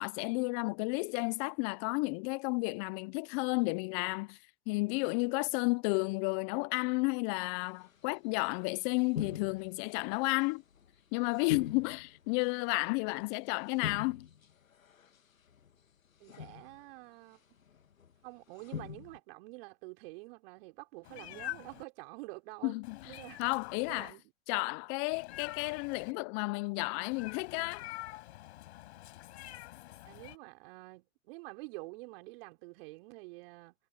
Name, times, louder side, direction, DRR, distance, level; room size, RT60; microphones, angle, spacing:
voice 1, 0.0-4.4 4.7-10.6 11.1-14.3 22.6-23.0 23.4-24.1 24.5-27.8, left 29 dB, 20° left, 0.4 m, -32 dB
sound 1, 7.8-8.0 8.2-8.5 9.0-10.0 10.4-11.0 11.3-13.2 13.7-15.2 15.5-15.8 16.2-16.9 17.6-18.2 18.5-19.2, left 8 dB, 85° left, 1.8 m, -43 dB
voice 2, 16.2-17.4 18.2-22.7 23.0-23.4 23.9-24.2 30.1-33.7, right 25 dB, 45° right, 4.6 m, -48 dB
Meow, 21.0-21.8 22.8-24.1 25.1-26.1 27.1-30.4, left 16 dB, 55° left, 5.2 m, -46 dB
hypercardioid pair, 120°, 39 cm